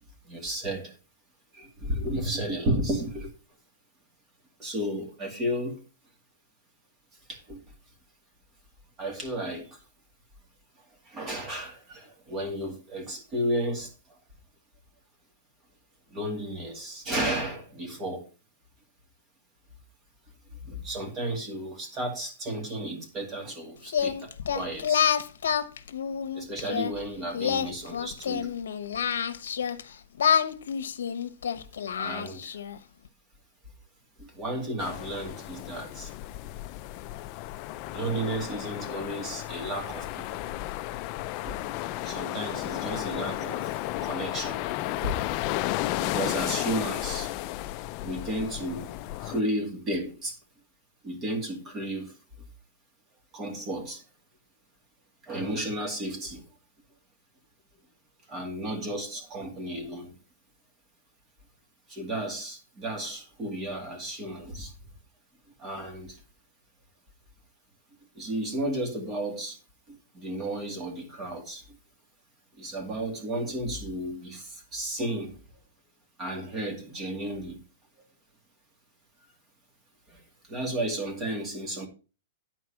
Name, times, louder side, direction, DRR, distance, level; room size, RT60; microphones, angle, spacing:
voice 1, 0.2-1.0 1.5-3.3 4.6-5.8 7.3-7.6 9.0-9.8 11.0-14.2 16.1-18.2 20.6-25.1 26.3-28.5 31.9-32.6 34.2-36.1 37.9-40.5 41.4-41.5 42.0-44.7 45.0-45.4 46.0-47.3 48.0-48.9 49.2-50.4 51.0-52.2 53.3-54.0 55.2-56.5 58.3-60.1 61.9-64.7 65.6-66.2 68.1-69.6 69.9-71.8 72.6-75.4 76.2-77.6 80.1-81.9, right 1 dB, 20° right, 2.3 m, -33 dB
Singing, 23.9-26.9 27.3-29.8 30.2-32.8, left 8 dB, 90° left, 1.0 m, -28 dB
sound 1, 34.8-49.4, left 16 dB, 35° left, 0.5 m, -33 dB
10.0 x 4.5 x 5.8 m
hypercardioid pair, 160°, 0 cm